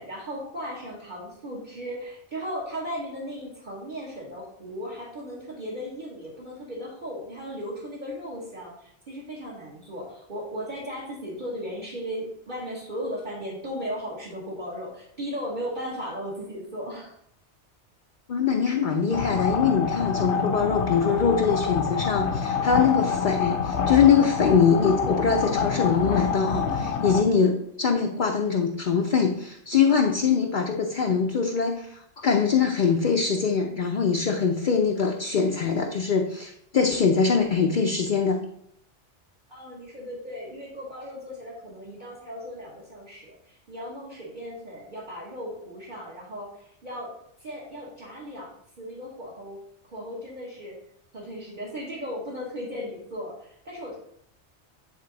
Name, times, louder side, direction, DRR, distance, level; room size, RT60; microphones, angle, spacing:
voice 1, 0.0-17.1 39.5-50.8 51.1-54.0, equal, 45° right, -5 dB, 1.4 m, -36 dB
voice 2, 18.3-38.4, left 6 dB, 50° left, 2 dB, 0.7 m, -23 dB
sound 1, 19.1-27.2, left 6 dB, 75° left, 1.0 m, -27 dB
8.8 x 3.7 x 3.9 m, 0.71 s
omnidirectional pair, 1.2 m